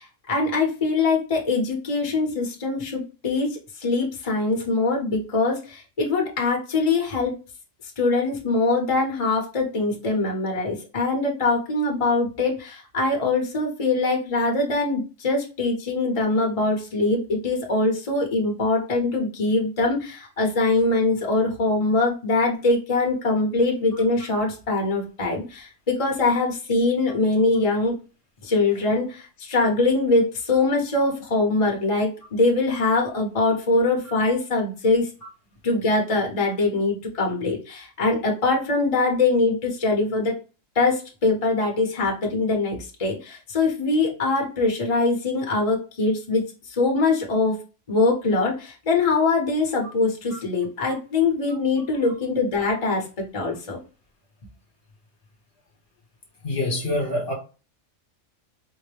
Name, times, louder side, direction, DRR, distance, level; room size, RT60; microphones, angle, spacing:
voice 1, 0.0-7.4 8.0-28.0 28.4-35.1 35.6-40.4 40.7-47.6 47.9-53.8, left 3 dB, 30° left, 0.8 m, -23 dB
voice 2, 56.4-57.3, left 1 dB, 50° left, 1.1 m, -25 dB
4.4 x 2.1 x 3.2 m
omnidirectional pair, 1.4 m